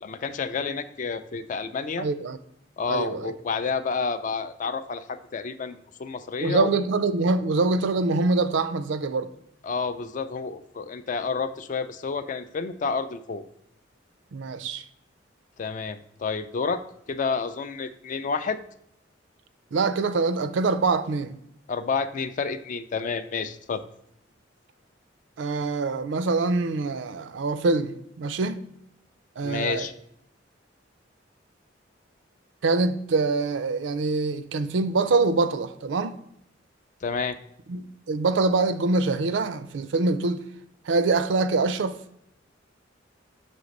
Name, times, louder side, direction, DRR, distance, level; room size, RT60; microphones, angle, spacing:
voice 1, 0.0-2.1 2.8-6.7 9.6-13.4 15.6-16.8 17.1-18.6 21.7-23.8 29.4-29.9 37.0-37.4, left 5 dB, 40° left, 0.3 m, -29 dB
voice 2, 2.0-2.4 2.9-3.3 6.4-9.3 14.3-14.8 19.7-21.4 25.4-28.6 29.4-29.9 32.6-36.2 37.7-40.4 40.8-42.0, right 3 dB, 70° right, 0.4 m, -24 dB
6.1 x 3.3 x 5.2 m
head